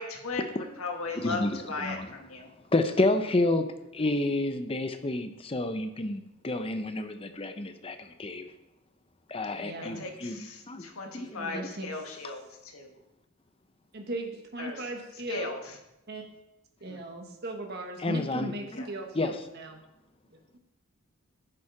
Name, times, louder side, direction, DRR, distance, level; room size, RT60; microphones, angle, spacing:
voice 1, 0.0-0.4 0.8-2.5 9.8-12.9 14.6-14.9 15.3-15.8 16.9-17.0 18.7-18.9, left 3 dB, 75° left, 3 dB, 1.7 m, -37 dB
voice 2, 1.2-2.1 2.7-3.6 4.0-8.5 9.3-10.9 11.1-11.7 18.0-18.8 19.1-19.4, left 2 dB, 25° left, 8 dB, 0.7 m, -30 dB
voice 3, 9.6-10.0 11.5-11.9 13.9-15.5 16.1-16.2 16.8-19.8 20.3-20.6, right 2 dB, 45° right, 3 dB, 1.4 m, -38 dB
11.0 x 7.4 x 4.9 m, 0.91 s
head